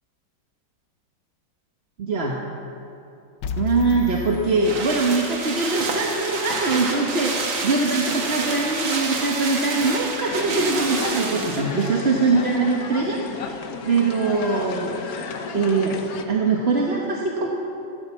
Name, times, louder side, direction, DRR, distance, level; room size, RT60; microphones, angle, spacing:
voice 1, 2.0-2.4 3.6-7.3 7.6-13.5 13.8-14.9 15.5-17.5, right 3 dB, 40° right, -1 dB, 1.2 m, -22 dB
sound 1, 3.4-5.5, left 8 dB, 70° left, 1.5 m, -32 dB
sound 2, 3.8-12.0 12.3-12.4, right 3 dB, 80° right, 2.5 m, -28 dB
sound 3, 10.3-16.3, left 5 dB, 55° left, 1.3 m, -33 dB
15.5 x 13.0 x 7.1 m, 2.7 s
omnidirectional pair, 2.2 m